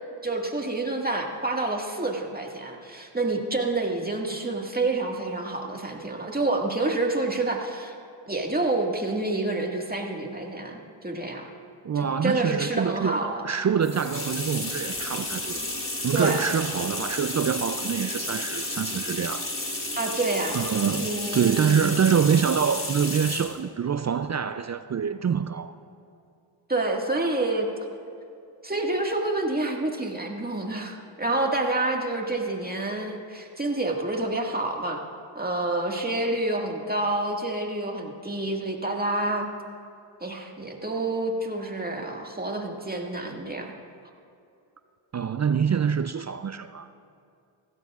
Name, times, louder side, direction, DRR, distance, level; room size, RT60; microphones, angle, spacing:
voice 1, 0.2-7.9 8.3-11.5 12.2-13.5 16.1-16.4 20.0-20.6 20.9-21.8 26.7-27.7 28.6-35.0 35.4-39.5 40.2-43.7, right 2 dB, 20° right, 1 dB, 1.8 m, -28 dB
voice 2, 11.8-15.6 16.0-19.5 20.5-25.7 45.1-46.9, right 7 dB, 35° right, 11 dB, 0.4 m, -25 dB
sound 1, 13.8-23.6, left 2 dB, 25° left, 2.6 m, -32 dB
18.0 x 16.0 x 2.4 m, 2.5 s
cardioid pair, 50°, 49 cm